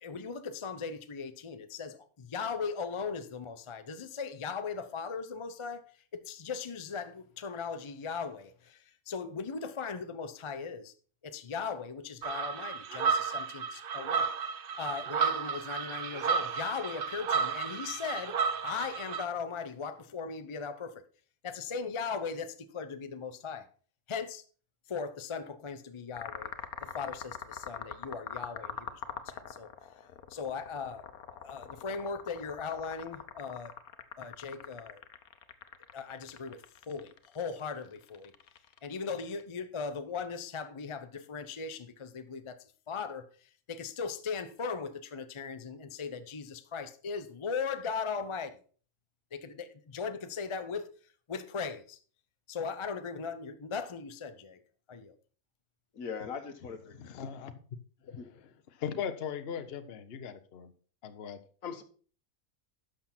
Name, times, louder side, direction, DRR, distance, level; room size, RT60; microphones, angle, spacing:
voice 1, 0.0-10.9 11.2-14.3 14.8-21.0 21.4-23.7 24.1-24.4 24.9-26.5 26.8-29.7 30.3-31.1 31.4-33.8 34.2-35.0 35.9-38.3 38.8-48.6 49.3-50.9 51.3-52.0 52.5-54.6 54.9-55.1, left 5 dB, 30° left, 0.5 m, -38 dB
sound 1, 12.2-19.2, right 6 dB, 50° right, 0.7 m, -32 dB
sound 2, 26.2-39.4, left 8 dB, 85° left, 1.4 m, -44 dB
voice 2, 55.9-57.0 58.2-58.3 61.6-61.8, left 6 dB, 70° left, 1.5 m, -40 dB
voice 3, 57.0-57.5 58.0-58.3 58.8-60.7 61.0-61.4, left 7 dB, 50° left, 0.9 m, -38 dB
11.5 x 6.4 x 4.3 m
omnidirectional pair, 1.5 m